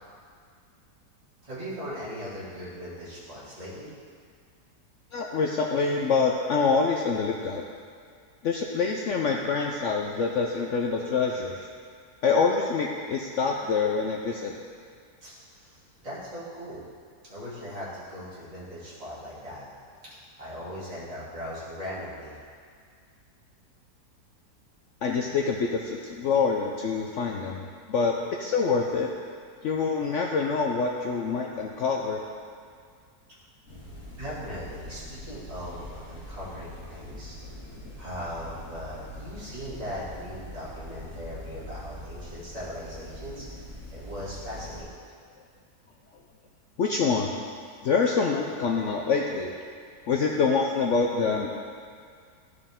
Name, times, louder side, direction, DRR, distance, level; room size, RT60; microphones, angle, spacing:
voice 1, 1.4-3.9 15.2-16.8 17.3-22.4 34.2-37.4 37.7-43.6 43.9-45.0, equal, 20° right, -11 dB, 2.3 m, -39 dB
voice 2, 5.1-7.6 8.4-11.6 12.2-14.5 25.0-29.1 29.6-32.2 46.8-47.4 47.8-49.5 50.1-51.5, left 5 dB, 70° left, 0 dB, 0.7 m, -26 dB
sound 1, 33.7-44.8, equal, 45° left, 2.6 m, -43 dB
13.0 x 4.9 x 3.6 m, 2.1 s
omnidirectional pair, 1.8 m